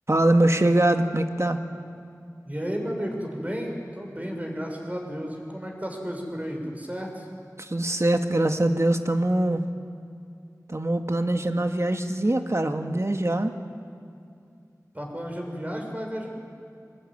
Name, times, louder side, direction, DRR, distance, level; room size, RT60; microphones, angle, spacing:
voice 1, 0.1-1.6 7.6-9.6 10.7-13.6, right 1 dB, 45° right, 6 dB, 1.7 m, -23 dB
voice 2, 2.4-7.3 14.9-16.3, equal, 20° right, 1 dB, 5.9 m, -33 dB
23.5 x 20.5 x 9.6 m, 2.5 s
wide cardioid pair, 40°, 7 cm